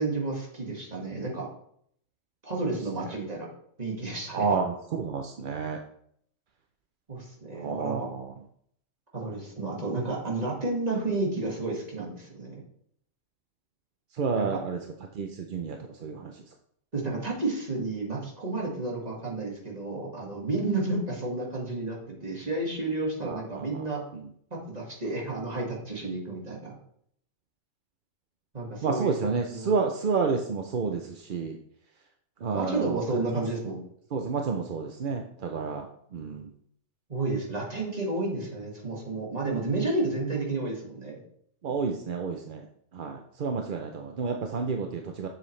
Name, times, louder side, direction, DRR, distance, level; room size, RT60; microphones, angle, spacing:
voice 1, 0.0-1.5 2.4-3.5 3.8-4.4 7.1-8.0 9.1-12.6 14.3-14.6 16.9-24.0 24.5-26.8 28.5-29.7 32.5-33.8 37.1-41.2, right 2 dB, 30° right, -2 dB, 2.0 m, -31 dB
voice 2, 4.3-5.8 7.5-8.3 14.1-14.8 15.1-16.4 23.2-24.3 28.8-31.6 32.4-33.0 33.3-33.4 34.1-36.5 41.6-42.7 42.9-45.3, right 5 dB, 50° right, 3 dB, 0.7 m, -30 dB
7.6 x 7.1 x 3.2 m, 0.67 s
omnidirectional pair, 1.4 m